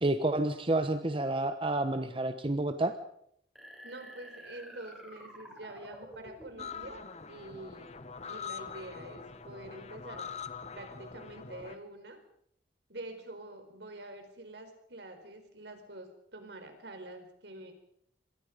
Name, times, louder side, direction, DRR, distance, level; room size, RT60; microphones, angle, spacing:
voice 1, 0.0-2.9, right 2 dB, 30° right, 8 dB, 1.1 m, -29 dB
sound 1, 3.6-7.1, equal, ahead, 7.3 m, -50 dB
voice 2, 3.8-7.9 8.3-10.2 10.7-12.2 12.9-17.7, right 1 dB, 70° right, 6 dB, 4.7 m, -46 dB
sound 2, 6.6-11.8, left 6 dB, 40° left, 1.2 m, -44 dB
26.5 x 22.0 x 5.2 m, 0.69 s
head